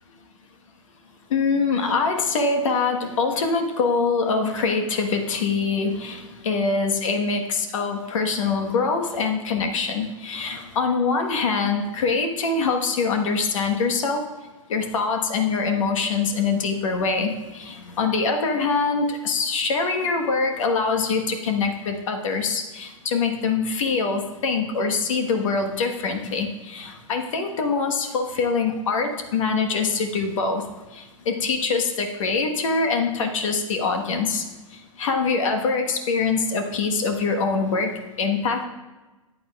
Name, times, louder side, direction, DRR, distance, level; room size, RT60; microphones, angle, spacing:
voice 1, 1.3-14.2 14.7-30.6 30.9-38.7, left 4 dB, 65° left, 4 dB, 1.3 m, -24 dB
14.0 x 9.0 x 2.4 m, 1.2 s
hypercardioid pair, 110°, 18 cm